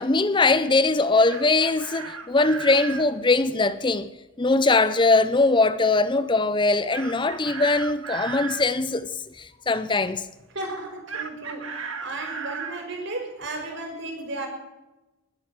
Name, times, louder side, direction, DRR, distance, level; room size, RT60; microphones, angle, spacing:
voice 1, 0.0-4.1 4.4-9.1 9.4-10.2, left 3 dB, 25° left, 0.6 m, -21 dB
Chicken rooster, 1.0-3.1 6.9-8.7 11.1-12.8, right 5 dB, 80° right, 1.8 m, -35 dB
voice 2, 10.5-14.5, right 2 dB, 60° right, 5.3 m, -34 dB
20.5 x 8.6 x 7.7 m
head